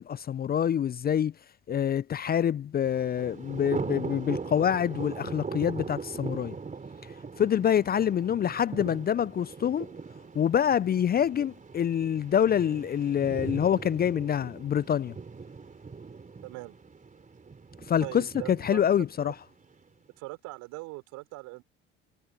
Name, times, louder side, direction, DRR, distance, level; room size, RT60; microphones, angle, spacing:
voice 1, 0.0-1.3 1.7-6.5 7.4-9.9 10.4-15.2 17.9-19.3, left 9 dB, 30° left, 0.6 m, -26 dB
Thunder, 2.9-19.8, right 4 dB, 25° right, 3.4 m, -40 dB
voice 2, 16.4-16.7 18.0-18.9 19.2-19.3 20.2-21.6, right 23 dB, 65° right, 5.7 m, -41 dB
hypercardioid pair, 60°, 31 cm